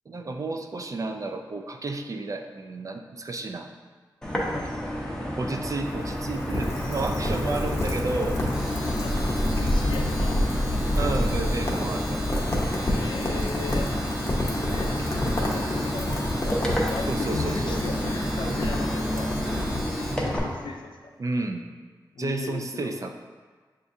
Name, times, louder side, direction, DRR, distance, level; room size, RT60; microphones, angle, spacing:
voice 1, 0.1-3.7 5.4-8.4 11.0-12.3 17.1-17.8 21.2-21.7 22.2-23.1, right 3 dB, 45° right, 5 dB, 0.3 m, -31 dB
sound 1, 4.2-20.4, equal, 10° left, 0.7 m, -31 dB
Rain, 5.6-20.4, left 1 dB, 40° left, 0.8 m, -28 dB
Domestic sounds home sounds, 8.4-20.3, equal, 10° right, 1.0 m, -41 dB
voice 2, 9.5-10.4 12.8-13.9 14.3-19.3 20.2-21.1 22.1-23.1, left 4 dB, 80° left, 2 dB, 0.4 m, -37 dB
6.7 x 2.4 x 2.6 m, 1.4 s
wide cardioid pair, 85°, 8 cm